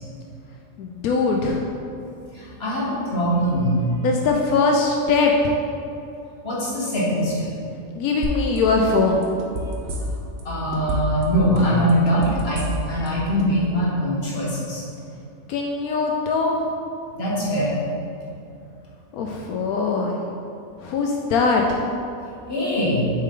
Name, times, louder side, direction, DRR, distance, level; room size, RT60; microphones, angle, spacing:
voice 1, 0.8-1.7 4.0-5.6 8.0-9.2 15.5-16.7 19.1-20.2 20.8-21.8, left 4 dB, 85° left, 1 dB, 1.1 m, -21 dB
voice 2, 2.3-3.8 6.4-7.5 10.4-14.9 17.1-17.8 22.5-23.1, equal, 45° left, -6 dB, 2.0 m, -22 dB
sound 1, 8.2-8.6 8.9-10.4 10.7-11.2 11.6-13.1 13.4-13.5, equal, 50° right, 1.0 m, -28 dB
7.6 x 6.6 x 3.8 m, 2.6 s
omnidirectional pair, 1.5 m